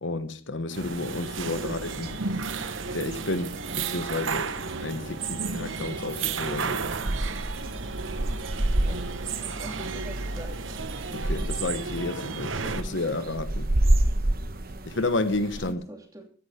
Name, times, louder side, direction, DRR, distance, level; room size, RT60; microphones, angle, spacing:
voice 1, 0.0-2.2 2.9-3.6 3.9-4.5 4.8-6.8 11.3-13.7 14.9-15.8, left 2 dB, 70° left, 1.1 m, -31 dB
sound 1, 0.7-15.7, right 1 dB, 50° right, 1.0 m, -31 dB
sound 2, 0.7-12.8, right 4 dB, 80° right, 1.0 m, -33 dB
sound 3, 1.7-13.0, left 3 dB, 35° left, 4.9 m, -48 dB
voice 2, 9.4-10.6 15.6-16.3, right 1 dB, 20° right, 2.7 m, -43 dB
15.5 x 10.0 x 5.0 m
head